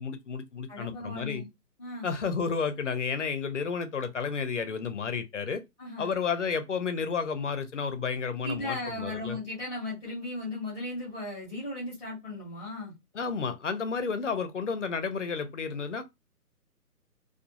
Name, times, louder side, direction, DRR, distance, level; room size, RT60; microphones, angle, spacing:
voice 1, 0.0-1.4 2.0-5.6 6.0-9.4 13.1-16.0, left 5 dB, 50° left, 0.5 m, -31 dB
voice 2, 0.7-1.5 1.8-2.1 5.8-6.1 8.4-12.9, left 2 dB, 5° right, 0.8 m, -36 dB
2.3 x 2.3 x 2.7 m
hypercardioid pair, 155°, 47 cm